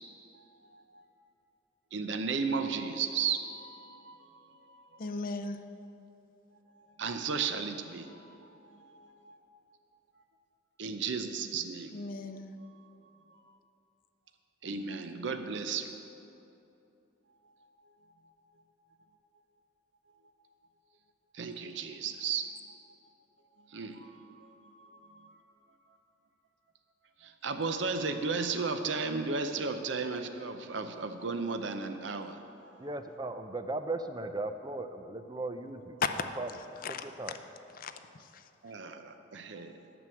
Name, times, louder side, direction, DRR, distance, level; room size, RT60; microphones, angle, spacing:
voice 1, 1.9-4.9 6.8-8.4 8.6-9.4 10.8-11.9 12.8-12.9 13.3-13.4 14.6-15.9 21.3-22.5 23.7-25.3 27.2-32.9 38.6-40.0, right 5 dB, 65° right, 7 dB, 0.6 m, -35 dB
voice 2, 5.0-5.6 11.9-12.5 36.0-36.1 36.8-37.1 37.7-38.5, left 4 dB, 45° left, 8 dB, 0.5 m, -36 dB
voice 3, 32.8-36.0 36.4-36.5 36.9-37.3, right 2 dB, 20° right, 8 dB, 0.5 m, -37 dB
9.1 x 6.2 x 7.7 m, 2.8 s
head